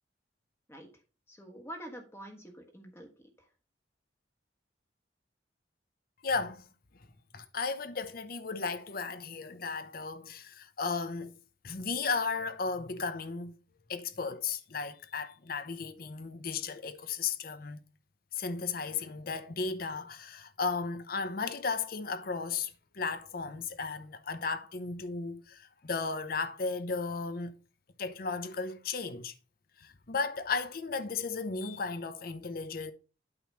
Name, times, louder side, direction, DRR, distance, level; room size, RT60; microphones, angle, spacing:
voice 1, 1.3-3.1, equal, 15° left, 1.4 m, -46 dB
voice 2, 6.2-6.7 7.3-11.3 11.6-13.6 13.9-17.8 18.3-27.6 28.0-29.3 29.8-32.9, left 4 dB, 50° left, 0.7 m, -35 dB
8.6 x 3.0 x 6.2 m
head